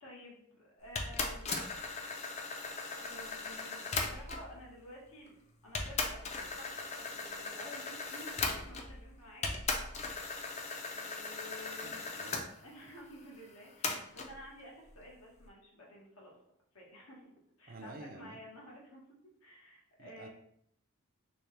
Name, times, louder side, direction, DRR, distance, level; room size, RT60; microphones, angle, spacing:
voice 1, 0.0-1.6 3.0-10.5 10.9-12.1 12.6-16.3 16.7-17.3 17.6-19.0 19.4-20.3, left 1 dB, 80° left, -3 dB, 1.2 m, -52 dB
sound 1, 0.9-4.5 5.3-5.4 5.7-9.0 9.4-12.4 13.8-14.3, left 3 dB, 30° left, 0.4 m, -38 dB
voice 2, 11.8-12.4 17.7-18.4 20.0-20.3, right 2 dB, 40° right, 4 dB, 0.4 m, -49 dB
3.1 x 2.8 x 3.2 m, 0.70 s
head